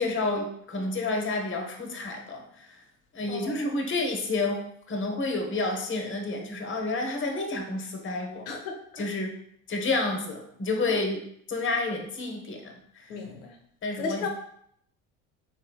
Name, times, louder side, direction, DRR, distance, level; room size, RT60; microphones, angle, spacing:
voice 1, 0.0-2.4 3.1-8.5 9.0-9.3 9.7-11.2 11.5-12.7 13.8-14.3, left 2 dB, 30° left, 3 dB, 0.9 m, -29 dB
voice 2, 8.5-8.8 13.1-13.5 14.0-14.3, left 4 dB, 85° left, 3 dB, 0.8 m, -34 dB
3.9 x 3.2 x 2.3 m, 0.69 s
hypercardioid pair, 65°, 39 cm